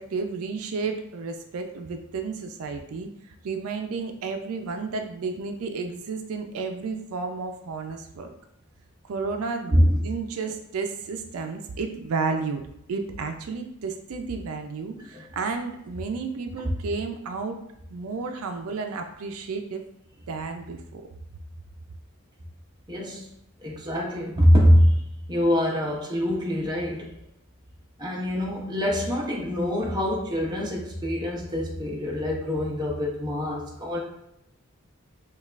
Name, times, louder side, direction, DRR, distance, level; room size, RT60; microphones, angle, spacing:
voice 1, 0.0-8.3 9.1-12.6 12.9-17.6 17.9-19.8 20.3-21.0, right 4 dB, 85° right, 5 dB, 0.4 m, -32 dB
voice 2, 22.9-23.3 23.6-25.0 25.3-27.1 28.0-34.0, equal, 20° right, -3 dB, 0.7 m, -24 dB
5.1 x 2.3 x 2.4 m, 0.79 s
head